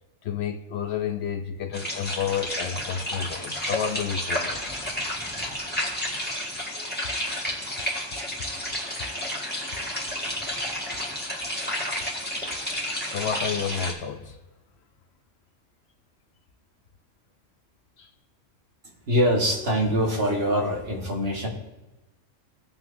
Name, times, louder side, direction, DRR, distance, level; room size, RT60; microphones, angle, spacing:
voice 1, 0.2-4.6 6.7-7.4 8.5-8.8 10.4-10.5 13.0-14.4 18.0-18.1, left 7 dB, 65° left, 7 dB, 0.8 m, -31 dB
sound 1, 1.7-13.9, left 1 dB, 10° left, 1.5 m, -31 dB
voice 2, 19.1-21.5, equal, 55° right, 0 dB, 1.6 m, -23 dB
17.0 x 5.9 x 2.6 m, 1.1 s
omnidirectional pair, 1.3 m